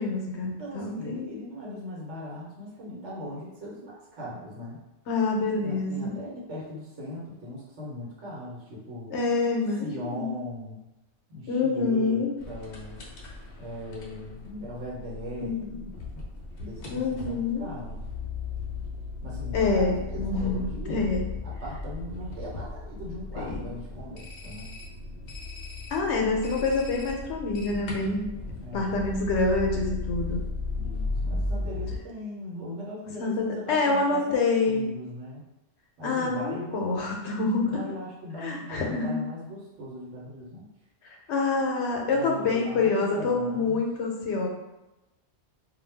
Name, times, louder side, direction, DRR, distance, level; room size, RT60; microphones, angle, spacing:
voice 1, 0.0-1.3 5.1-6.1 9.1-10.3 11.5-12.3 15.4-15.6 16.9-17.7 19.5-21.3 23.3-23.6 25.9-28.3 28.6-30.4 33.2-34.8 36.0-37.8 38.4-39.2 41.0-44.5, left 3 dB, 80° left, 0 dB, 0.9 m, -27 dB
voice 2, 0.6-4.8 5.6-9.1 9.8-10.9 11.3-13.0 13.6-16.0 16.6-18.0 19.2-21.0 21.4-24.7 28.6-29.1 30.7-35.4 36.0-37.0 37.7-40.7 42.1-43.8, equal, 85° right, -4 dB, 1.2 m, -39 dB
sound 1, 12.4-32.0, left 3 dB, 55° left, 0.5 m, -36 dB
2.3 x 2.2 x 3.3 m, 0.98 s
omnidirectional pair, 1.2 m